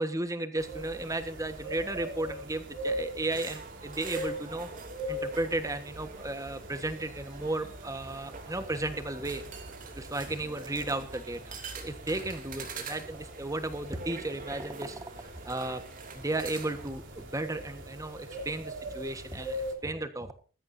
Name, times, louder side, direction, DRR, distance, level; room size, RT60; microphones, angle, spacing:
voice 1, 0.0-4.7 5.1-9.4 10.0-15.8 16.1-20.3, right 2 dB, 15° right, 9 dB, 1.4 m, -34 dB
sound 1, 0.6-19.7, equal, 55° right, 3.4 m, -42 dB
sound 2, 3.3-16.9, right 4 dB, 40° right, 3.0 m, -46 dB
20.5 x 14.5 x 2.7 m, 0.36 s
head